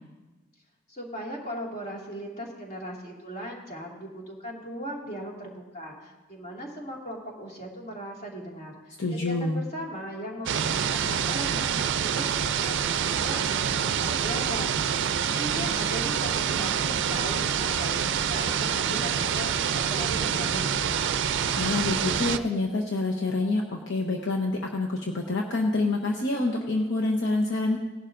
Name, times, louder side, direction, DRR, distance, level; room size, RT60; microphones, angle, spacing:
voice 1, 0.9-12.8 13.1-21.1, equal, 35° left, -2 dB, 2.1 m, -38 dB
voice 2, 9.0-9.6 21.5-27.8, left 2 dB, 60° left, 0 dB, 0.9 m, -27 dB
sound 1, 10.5-22.4, right 8 dB, 60° right, 0.4 m, -26 dB
18.0 x 11.0 x 2.6 m, 1.2 s
head